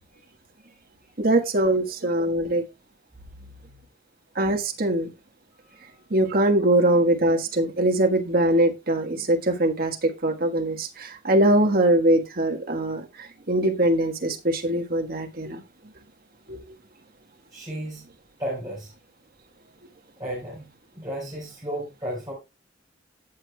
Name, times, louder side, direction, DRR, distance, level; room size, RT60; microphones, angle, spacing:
voice 1, 1.2-2.6 4.3-5.1 6.1-15.6 16.5-16.6, right 1 dB, 55° right, 1.5 m, -22 dB
voice 2, 5.6-6.0 17.5-18.1 18.4-18.9 20.2-20.7 20.9-22.3, equal, 20° right, 4.9 m, -34 dB
18.0 x 6.4 x 2.3 m
head